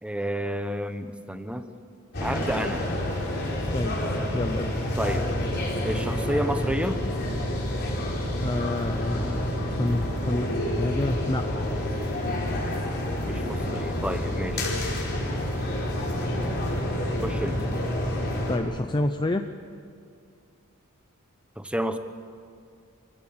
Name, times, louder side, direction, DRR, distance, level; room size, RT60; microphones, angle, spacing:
voice 1, 0.0-1.7 2.2-2.9 5.0-5.3 5.8-7.0 13.2-14.7 17.2-17.6 21.6-22.0, equal, 5° right, 9 dB, 1.0 m, -30 dB
sound 1, 2.1-18.6, left 1 dB, 50° left, 4.4 m, -28 dB
voice 2, 4.3-4.7 8.4-9.5 9.8-11.4 18.5-19.4, left 2 dB, 20° left, 7 dB, 0.6 m, -28 dB
27.0 x 16.0 x 8.8 m, 2.4 s
head